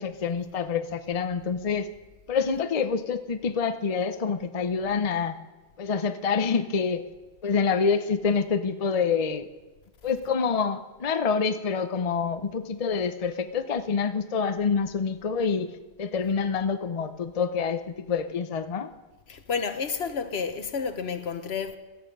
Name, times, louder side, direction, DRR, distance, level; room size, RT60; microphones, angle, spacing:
voice 1, 0.0-1.9 2.3-5.4 5.8-7.0 7.4-9.5 10.0-15.7 16.0-18.9, left 5 dB, 40° left, 0.6 m, -27 dB
voice 2, 19.3-21.8, left 6 dB, 70° left, 1.2 m, -30 dB
17.0 x 12.5 x 5.3 m
omnidirectional pair, 1.1 m